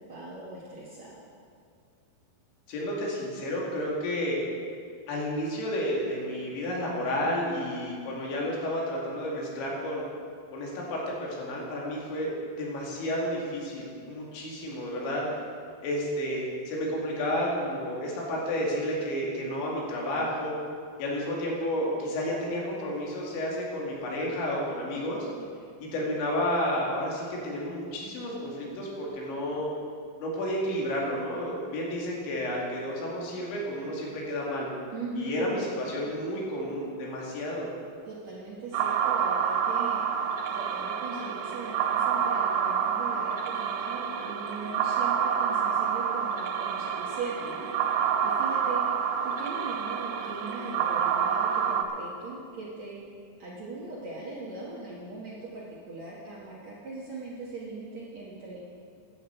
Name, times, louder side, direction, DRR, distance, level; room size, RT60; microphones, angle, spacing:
voice 1, 0.1-1.2 34.9-35.4 38.1-48.8 49.2-53.0 53.4-58.6, right 3 dB, 60° right, -5 dB, 1.9 m, -40 dB
voice 2, 2.7-4.4 5.1-10.0 10.5-12.3 12.6-15.4 15.8-20.6 21.0-25.3 25.8-29.7 30.2-34.7 35.1-37.7, equal, 85° left, -3 dB, 4.6 m, -31 dB
sound 1, 38.7-51.8, right 7 dB, 80° right, 2.6 m, -28 dB
14.5 x 10.5 x 4.6 m, 2.3 s
omnidirectional pair, 5.1 m